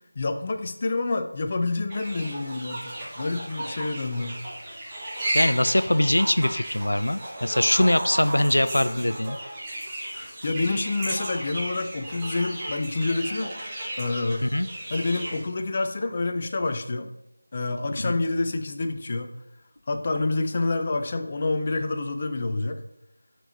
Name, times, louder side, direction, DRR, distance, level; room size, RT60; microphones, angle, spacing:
voice 1, 0.2-4.3 10.1-13.5 14.0-14.5 14.9-17.1 17.5-19.3 19.9-22.8, left 3 dB, 30° left, 7 dB, 0.5 m, -28 dB
sound 1, 1.9-15.4, right 1 dB, 15° right, 1.4 m, -34 dB
voice 2, 5.3-9.4 14.4-14.7 18.0-18.1, left 1 dB, 85° left, 13 dB, 0.3 m, -22 dB
10.0 x 4.5 x 2.7 m, 0.88 s
figure-of-eight pair, 170°, 0 cm